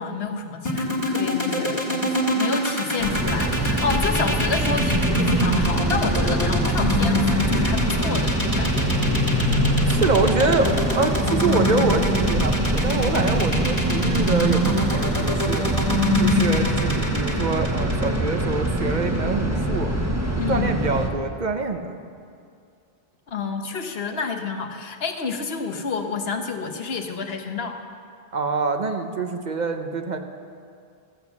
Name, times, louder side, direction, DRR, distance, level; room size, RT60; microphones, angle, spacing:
voice 1, 0.0-9.0 20.4-20.7 23.3-27.8, left 5 dB, 75° left, 5 dB, 1.2 m, -29 dB
sound 1, 0.7-18.8, left 1 dB, 40° left, 1.9 m, -24 dB
sound 2, 3.0-21.1, right 1 dB, 15° right, 1.2 m, -24 dB
voice 2, 9.8-15.6 16.2-19.9 20.5-22.0 28.3-30.2, right 4 dB, 50° right, 6 dB, 0.8 m, -25 dB
14.0 x 8.1 x 7.1 m, 2.4 s
omnidirectional pair, 1.0 m